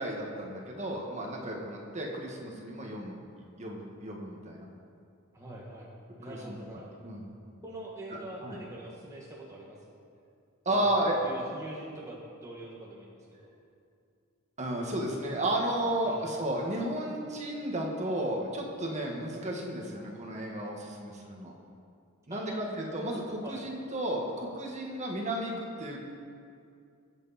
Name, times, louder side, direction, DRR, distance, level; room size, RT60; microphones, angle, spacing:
voice 1, 0.0-3.2 3.6-4.7 6.2-6.6 7.0-7.3 8.4-8.6 10.7-11.2 14.6-21.5 22.3-26.1, right 1 dB, 35° right, -1 dB, 1.9 m, -33 dB
voice 2, 5.3-5.9 6.2-7.0 7.6-10.0 10.7-13.5 16.0-16.2 22.3-22.6 23.4-23.6, right 1 dB, 15° right, -4 dB, 1.6 m, -44 dB
22.5 x 8.2 x 4.3 m, 2.4 s
head